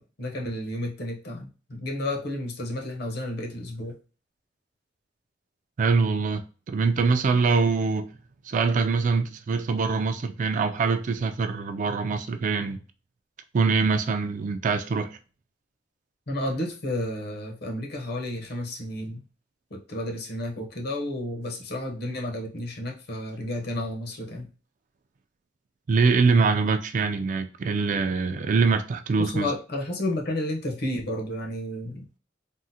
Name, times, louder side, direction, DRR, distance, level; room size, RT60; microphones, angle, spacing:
voice 1, 0.0-3.9 16.3-19.2 19.7-24.5 29.2-32.1, left 1 dB, 60° left, 0.8 m, -31 dB
voice 2, 5.8-6.4 6.7-8.1 8.5-12.8 13.5-15.2 25.9-29.5, right 4 dB, 45° right, 0.3 m, -24 dB
3.6 x 2.1 x 2.7 m
head